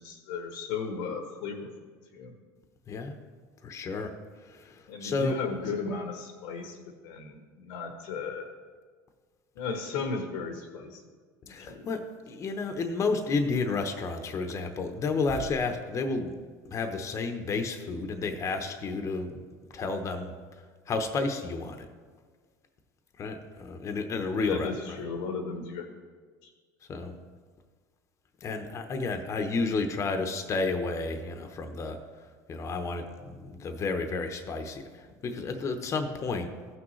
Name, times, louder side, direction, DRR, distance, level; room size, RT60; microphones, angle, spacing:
voice 1, 0.0-1.7 2.1-2.4 4.9-6.8 7.0-8.5 9.5-11.0 11.4-11.9 24.4-25.9 26.4-26.5, left 5 dB, 80° left, 4 dB, 1.2 m, -35 dB
voice 2, 2.9-3.2 3.6-4.1 4.4-5.4 11.5-16.4 16.6-19.4 19.7-20.3 20.9-21.9 23.2-25.0 26.9-27.1 28.4-36.5, left 3 dB, 35° left, 6 dB, 0.9 m, -31 dB
15.0 x 6.2 x 3.2 m, 1.5 s
supercardioid pair, 105°, 9 cm